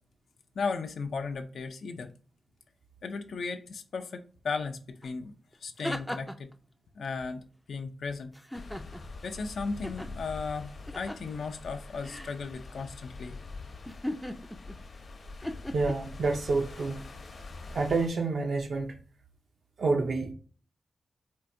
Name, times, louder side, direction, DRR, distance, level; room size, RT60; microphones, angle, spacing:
voice 1, 0.6-2.1 3.0-5.3 5.6-6.5 6.9-7.4 7.7-8.3 9.2-13.4, left 4 dB, 85° left, 0.4 m, -35 dB
sound 1, 5.0-5.1 5.5-6.5 8.3-9.2 9.8-10.1 10.9-11.3 12.0-12.4 13.8-14.8 15.4-15.9, left 1 dB, 5° left, 0.3 m, -38 dB
sound 2, 8.5-18.1, left 3 dB, 55° left, 0.7 m, -44 dB
voice 2, 15.7-17.1 17.7-19.0 19.8-20.3, right 3 dB, 60° right, 0.5 m, -28 dB
4.4 x 2.5 x 2.5 m
wide cardioid pair, 175°, 0 cm